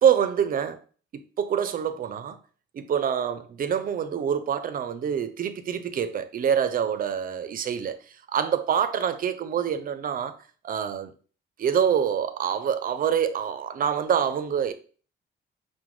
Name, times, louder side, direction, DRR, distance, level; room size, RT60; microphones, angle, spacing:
voice 1, 0.0-0.8 1.1-2.4 2.7-8.0 8.3-10.4 10.6-11.1 11.6-14.7, right 8 dB, 45° right, 0.4 m, -26 dB
4.9 x 2.1 x 3.0 m
cardioid pair, 90°, 20 cm